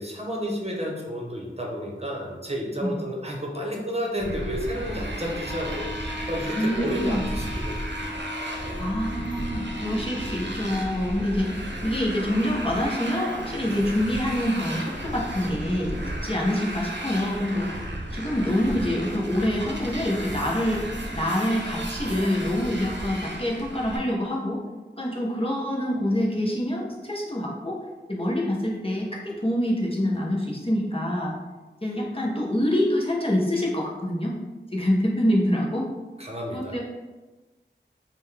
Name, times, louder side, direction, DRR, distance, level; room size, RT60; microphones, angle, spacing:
voice 1, 0.0-8.1 36.2-36.8, equal, 30° right, -1 dB, 0.8 m, -31 dB
Motorcycle, 4.2-24.0, right 1 dB, 65° right, 0.8 m, -34 dB
Wind instrument woodwind instrument, 5.4-10.6, left 2 dB, 5° left, 0.4 m, -39 dB
voice 2, 6.6-7.2 8.8-17.7 18.1-20.9 21.1-24.6 25.0-27.8 28.1-31.4 31.8-34.4 34.7-35.9 36.5-36.8, left 1 dB, 30° left, -3 dB, 0.8 m, -26 dB
5.3 x 2.2 x 3.3 m, 1.2 s
wide cardioid pair, 50°, 20 cm